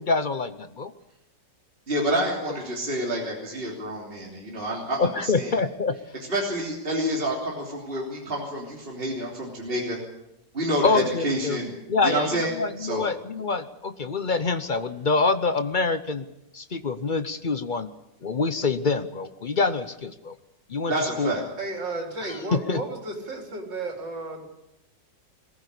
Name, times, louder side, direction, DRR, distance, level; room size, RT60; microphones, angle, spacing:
voice 1, 0.0-0.9 5.0-6.0 10.8-11.6 11.9-16.2 16.5-17.9 18.2-20.3 20.7-21.3 22.2-22.8, left 4 dB, 45° left, 11 dB, 0.6 m, -26 dB
voice 2, 1.9-5.6 6.3-10.0 10.5-11.7 12.0-13.0 20.9-21.4, right 1 dB, 30° right, -2 dB, 3.5 m, -28 dB
voice 3, 21.6-24.4, right 2 dB, 85° right, 2 dB, 4.5 m, -33 dB
22.0 x 15.0 x 8.4 m, 0.90 s
omnidirectional pair, 1.9 m